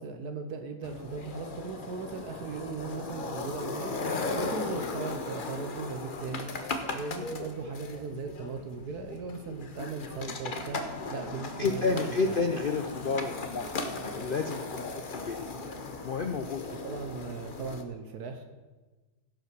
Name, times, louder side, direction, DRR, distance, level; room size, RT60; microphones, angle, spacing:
voice 1, 0.0-3.9 4.3-10.8 11.1-12.4 16.8-18.4, right 4 dB, 70° right, 6 dB, 1.3 m, -38 dB
sound 1, 0.8-17.8, left 3 dB, 40° left, 0.8 m, -37 dB
voice 2, 11.6-13.9 14.1-15.4 16.0-16.6, left 4 dB, 90° left, 6 dB, 0.4 m, -30 dB
16.0 x 5.7 x 6.1 m, 1.2 s
omnidirectional pair, 1.8 m